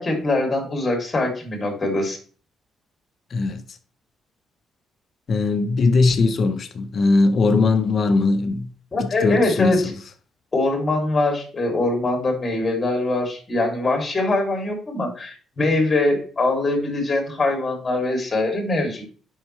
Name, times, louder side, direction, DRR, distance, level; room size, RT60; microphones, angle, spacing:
voice 1, 0.0-2.2 8.9-9.8 10.5-19.1, left 2 dB, 30° left, 3.1 m, -23 dB
voice 2, 3.3-3.6 5.3-8.7 9.0-9.9, left 3 dB, 50° left, 1.1 m, -20 dB
11.0 x 5.7 x 3.3 m
cardioid pair, 90°, 0 cm